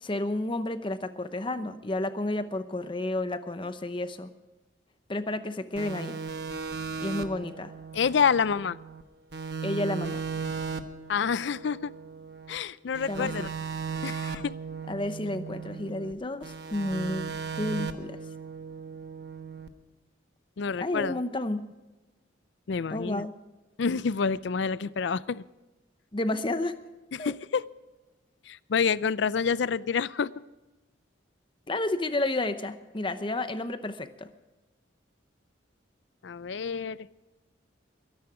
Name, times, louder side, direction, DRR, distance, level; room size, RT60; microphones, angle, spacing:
voice 1, 0.0-4.3 5.1-6.2 7.0-7.7 9.6-10.2 13.1-13.5 14.9-18.2 20.8-21.6 22.9-23.3 26.1-26.7 27.2-27.3 31.7-34.3, left 2 dB, 25° left, 10 dB, 0.8 m, -31 dB
sound 1, 5.8-9.0 9.3-12.6 12.9-16.1 16.4-19.7, right 5 dB, 60° right, 1.1 m, -37 dB
voice 2, 7.9-8.8 11.1-11.9 12.5-13.5 14.0-14.5 20.6-21.2 22.7-23.3 23.8-25.4 27.1-27.6 28.5-30.3 36.2-37.0, left 6 dB, 65° left, 18 dB, 0.5 m, -28 dB
22.0 x 10.5 x 4.9 m, 1.1 s
head